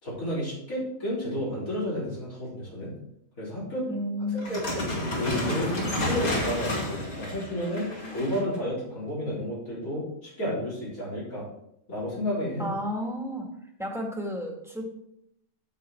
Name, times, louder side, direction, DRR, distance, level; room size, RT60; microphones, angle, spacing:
voice 1, 0.0-2.9 3.4-3.9 4.3-5.7 6.0-11.5 11.9-12.7, equal, 85° left, -8 dB, 4.4 m, -31 dB
voice 2, 3.9-4.6 12.6-13.5 13.8-14.8, left 1 dB, ahead, -1 dB, 2.0 m, -32 dB
sound 1, 4.4-8.6, left 1 dB, 50° left, 2.3 m, -30 dB
8.6 x 7.2 x 4.5 m, 0.77 s
omnidirectional pair, 1.4 m